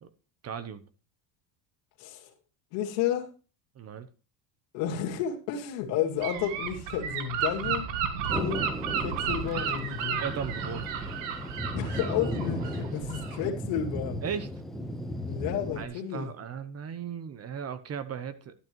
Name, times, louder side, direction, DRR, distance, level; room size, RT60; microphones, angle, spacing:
voice 1, 0.4-0.8 3.8-4.1 10.2-10.9 14.2-14.5 15.8-18.5, right 7 dB, 30° right, 14 dB, 0.8 m, -36 dB
voice 2, 2.0-2.3 2.7-3.3 4.7-7.9 8.2-8.7 9.0-10.2 11.7-14.2 15.3-16.3, left 9 dB, 70° left, 2 dB, 2.5 m, -31 dB
Gull seagull / Wind, 6.2-13.5, right 7 dB, 70° right, 1.8 m, -33 dB
Thunder, 8.3-15.9, left 1 dB, ahead, 0.9 m, -36 dB
11.5 x 11.0 x 3.0 m, 0.33 s
supercardioid pair, 110°, 48 cm